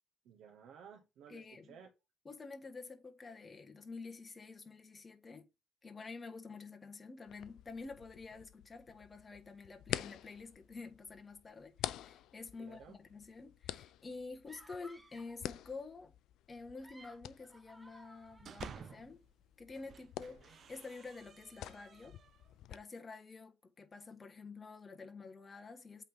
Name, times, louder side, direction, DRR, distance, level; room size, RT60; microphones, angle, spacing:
voice 1, 0.2-1.9 12.6-13.0 20.4-20.6, right 7 dB, 85° right, 1.0 m, -56 dB
voice 2, 1.3-1.8 2.2-5.4 5.8-16.1 16.5-19.2 19.6-22.1 22.7-26.0, left 4 dB, 30° left, 1.4 m, -49 dB
sound 1, 7.3-22.8, left 13 dB, 85° left, 0.4 m, -48 dB
sound 2, 14.5-15.4 16.6-19.0, right 1 dB, 10° right, 1.9 m, -59 dB
sound 3, 18.1-19.2 19.7-22.5, right 7 dB, 60° right, 0.6 m, -54 dB
8.3 x 3.5 x 5.5 m
cardioid pair, 90°, 0 cm